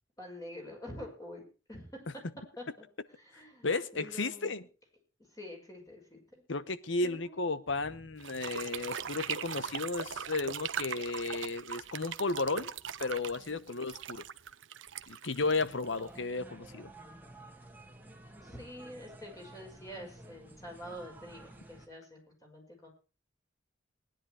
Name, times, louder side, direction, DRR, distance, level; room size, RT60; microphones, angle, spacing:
voice 1, 0.2-1.4 1.7-2.0 2.6-2.9 3.2-4.7 5.3-6.4 7.0-7.9 13.4-13.6 18.4-22.9, equal, 20° left, 6.0 m, -47 dB
voice 2, 3.6-4.6 6.5-12.7 13.0-14.2 15.1-16.9, left 3 dB, 65° left, 1.0 m, -34 dB
sound 1, 8.2-16.2, right 8 dB, 70° right, 0.8 m, -40 dB
sound 2, 15.4-21.9, right 1 dB, 10° right, 1.7 m, -52 dB
19.5 x 10.5 x 4.8 m
head